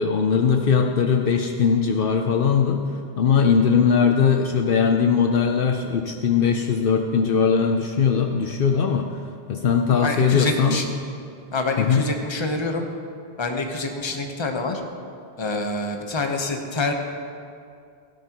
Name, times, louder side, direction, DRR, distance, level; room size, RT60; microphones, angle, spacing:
voice 1, 0.0-2.8 3.2-9.2 9.5-10.8 11.8-12.1, left 6 dB, 65° left, 4 dB, 0.8 m, -20 dB
voice 2, 10.0-10.9 11.5-12.8 13.4-14.8 15.4-16.9, left 2 dB, 30° left, 3 dB, 0.9 m, -26 dB
16.0 x 12.0 x 3.0 m, 2.4 s
omnidirectional pair, 1.1 m